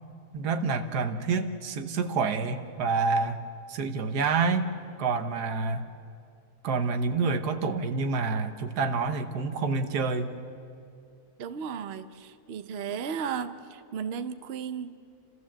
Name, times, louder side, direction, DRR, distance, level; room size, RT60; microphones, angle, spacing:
voice 1, 0.3-3.4 3.7-4.7 5.0-5.8 6.6-10.3, right 4 dB, 85° right, 8 dB, 1.7 m, -28 dB
voice 2, 11.4-15.0, right 7 dB, 50° right, 11 dB, 0.9 m, -35 dB
29.5 x 14.0 x 7.4 m, 2.5 s
omnidirectional pair, 1.7 m